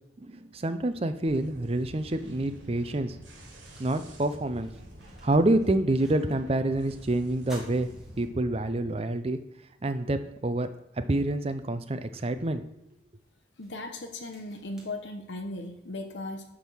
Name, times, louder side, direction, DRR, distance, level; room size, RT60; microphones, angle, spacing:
voice 1, 0.2-3.2 3.8-4.7 5.2-7.9 8.2-9.4 9.8-10.7 11.0-12.6, right 1 dB, 30° right, 9 dB, 0.5 m, -27 dB
sound 1, 1.3-8.9, equal, 75° right, 2.2 m, -48 dB
sound 2, 3.3-6.6 6.9-7.0 7.4-8.9 9.3-9.4 10.8-10.9 11.5-15.7, right 1 dB, 5° right, 1.9 m, -54 dB
voice 2, 13.6-16.4, left 2 dB, 75° left, 5 dB, 1.0 m, -37 dB
9.7 x 3.6 x 6.2 m, 0.87 s
head